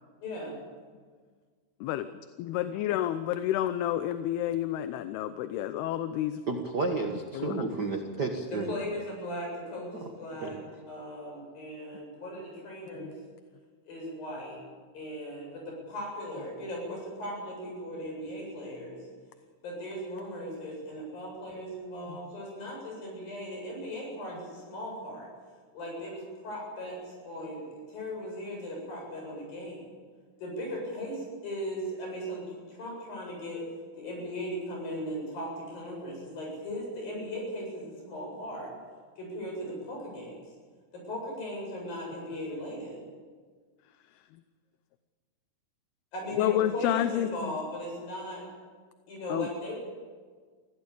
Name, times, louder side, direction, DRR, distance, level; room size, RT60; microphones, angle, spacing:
voice 1, 0.2-0.5 8.5-10.6 10.9-13.2 13.9-14.6 14.9-19.0 19.6-25.3 25.7-29.9 30.4-33.6 33.9-38.7 39.2-40.4 40.9-43.0 46.1-48.4 49.1-49.8, equal, 60° left, -1 dB, 9.6 m, -38 dB
voice 2, 2.4-6.4 7.3-7.7 13.0-13.1 22.1-22.2 46.4-47.6 49.3-49.5, left 12 dB, 80° left, 11 dB, 2.7 m, -29 dB
voice 3, 6.5-8.7 10.4-10.5, right 3 dB, 85° right, 3 dB, 0.9 m, -31 dB
22.5 x 16.5 x 8.5 m, 1.5 s
omnidirectional pair, 4.6 m